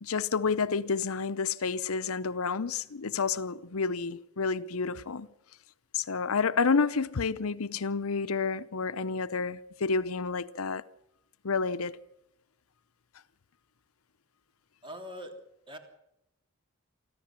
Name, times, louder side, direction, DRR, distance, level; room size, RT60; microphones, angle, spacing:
voice 1, 0.0-5.3 5.9-10.8 11.4-12.0, left 5 dB, 80° left, 0.7 m, -29 dB
voice 2, 14.8-15.3 15.7-15.8, equal, 25° right, 3.3 m, -41 dB
25.0 x 14.5 x 7.3 m
head